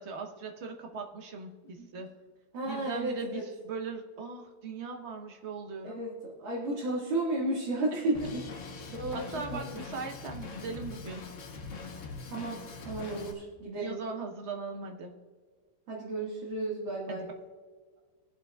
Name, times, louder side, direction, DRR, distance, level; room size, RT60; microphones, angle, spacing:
voice 1, 0.0-2.1 2.6-6.0 7.9-8.1 9.1-11.4 13.8-15.1 17.1-17.2, right 4 dB, 45° right, 3 dB, 1.0 m, -39 dB
voice 2, 2.5-3.4 5.8-6.1 6.4-8.4 8.9-9.2 9.5-9.6 12.3-14.0 15.9-17.2, right 2 dB, 75° right, -7 dB, 2.6 m, -33 dB
Drum kit, 8.1-13.3, left 4 dB, 50° left, 1.2 m, -42 dB
23.0 x 7.7 x 2.3 m, 1.5 s
omnidirectional pair, 2.1 m